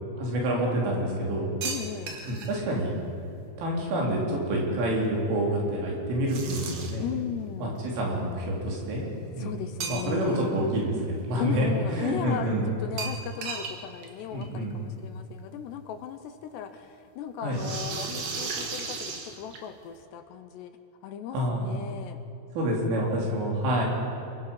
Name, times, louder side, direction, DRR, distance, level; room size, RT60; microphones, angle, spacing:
voice 1, 0.2-1.5 2.3-2.9 3.6-7.0 7.6-9.1 9.3-9.6 9.9-12.7 14.3-14.8 17.4-17.6 21.3-21.7 22.5-23.8, right 1 dB, 90° right, -3 dB, 6.5 m, -27 dB
voice 2, 1.6-2.2 7.0-7.8 9.4-10.5 11.4-20.8 21.0-22.2 23.2-23.8, left 9 dB, 75° left, 8 dB, 2.7 m, -37 dB
sound 1, 1.6-2.6 6.3-7.1 9.8-10.4 10.8-10.9 13.0-13.8 14.0-14.1 14.4-14.5 15.7-15.8 17.5-19.8, right 5 dB, 55° right, 3.0 m, -35 dB
27.5 x 22.0 x 5.7 m, 2.9 s
omnidirectional pair, 5.5 m